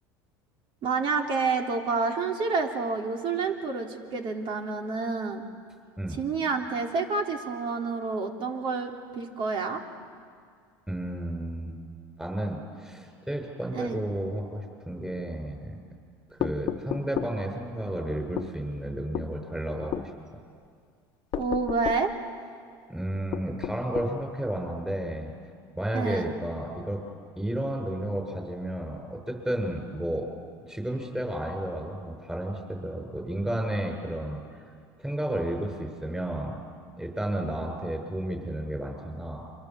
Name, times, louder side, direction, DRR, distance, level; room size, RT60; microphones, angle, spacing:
voice 1, 0.8-5.4 6.2-9.8 13.7-14.0 21.3-22.1 25.9-26.3, right 4 dB, 55° right, 3 dB, 3.4 m, -29 dB
voice 2, 10.9-11.8 12.2-15.8 16.3-20.1 22.9-25.3 25.8-27.0 27.4-30.3 30.7-34.4 35.0-36.7 37.0-39.4, right 1 dB, 5° right, 2 dB, 7.1 m, -32 dB
window knocks, 16.4-17.4 18.4-18.5 19.1-19.3 19.9-20.1 21.3-22.1 23.3-24.2, left 11 dB, 50° left, 1.2 m, -32 dB
28.5 x 25.0 x 7.8 m, 2.2 s
supercardioid pair, 95°, 10 cm